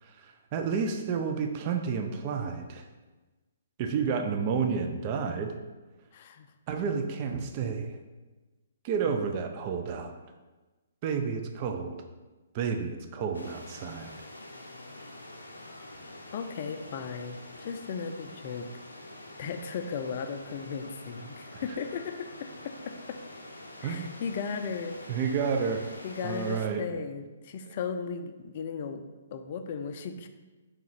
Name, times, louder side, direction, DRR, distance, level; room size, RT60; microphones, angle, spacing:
voice 1, 0.0-2.8 3.8-5.6 6.7-8.0 8.8-10.1 11.0-12.0 12.5-14.1 21.5-21.6 23.8-24.2 25.1-25.9 26.2-26.8, right 6 dB, 35° right, 5 dB, 0.4 m, -30 dB
voice 2, 6.1-6.5 16.3-18.7 19.4-23.2 23.8-25.0 26.0-29.0 29.3-30.3, left 6 dB, 45° left, 7 dB, 0.4 m, -36 dB
sound 1, 13.3-26.7, left 1 dB, 80° left, 0.6 m, -46 dB
3.7 x 3.1 x 4.6 m, 1.2 s
figure-of-eight pair, 125°, 0 cm